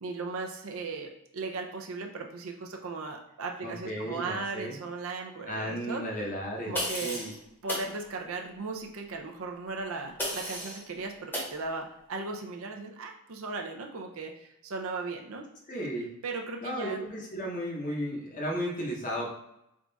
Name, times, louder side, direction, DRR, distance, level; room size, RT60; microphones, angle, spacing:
voice 1, 0.0-6.0 6.7-7.2 7.6-15.5 16.2-17.0, right 3 dB, 65° right, 2 dB, 0.6 m, -37 dB
voice 2, 3.6-4.8 5.5-7.3 15.7-16.1 16.6-19.3, equal, 35° left, -2 dB, 0.8 m, -34 dB
sound 1, 6.7-7.3 7.7-7.9 10.2-10.8 11.3-11.5, equal, 10° left, 0.9 m, -33 dB
3.6 x 2.4 x 3.9 m, 0.83 s
head